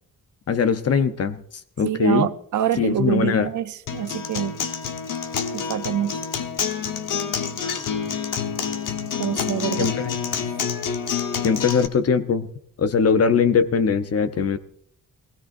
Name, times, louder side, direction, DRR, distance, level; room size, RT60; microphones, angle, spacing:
voice 1, 0.5-1.4 1.8-2.3 2.8-3.5 9.8-10.2 11.4-12.5 12.8-14.6, left 5 dB, 50° left, 0.9 m, -21 dB
voice 2, 1.8-4.5 5.5-6.2 9.2-9.9, right 10 dB, 65° right, 0.7 m, -25 dB
Acoustic guitar, 3.9-11.9, left 7 dB, 80° left, 1.2 m, -28 dB
22.5 x 16.5 x 2.6 m
wide cardioid pair, 130°, 32 cm